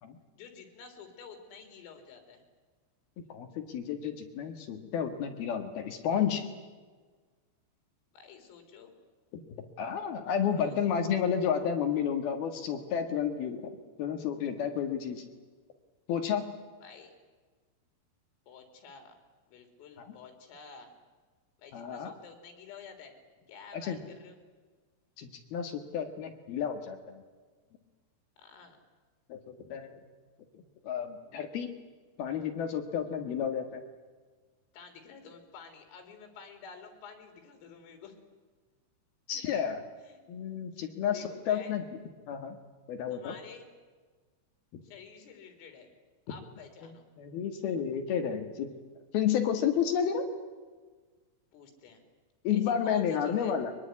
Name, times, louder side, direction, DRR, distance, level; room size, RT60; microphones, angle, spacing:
voice 1, 0.4-2.4 8.1-8.9 10.4-10.8 11.0-11.2 16.8-17.1 18.5-19.2 19.5-20.9 21.6-23.2 23.5-24.4 28.4-28.8 34.7-38.2 39.3-39.4 40.0-40.2 40.8-41.7 43.1-43.7 44.8-45.9 46.3-47.0 51.5-52.0 52.5-53.6, left 6 dB, 80° left, 6 dB, 6.2 m, -50 dB
voice 2, 3.2-6.5 9.3-9.4 9.8-15.2 16.1-16.5 21.7-22.1 23.7-24.0 25.2-27.2 29.3-30.0 30.8-31.7 32.2-33.8 39.3-39.8 40.3-41.8 42.3-42.6 42.9-43.3 44.7-44.8 47.2-48.7 49.1-50.3 52.4-53.7, left 8 dB, 60° left, 6 dB, 3.0 m, -31 dB
23.5 x 22.0 x 9.8 m, 1.4 s
omnidirectional pair, 5.9 m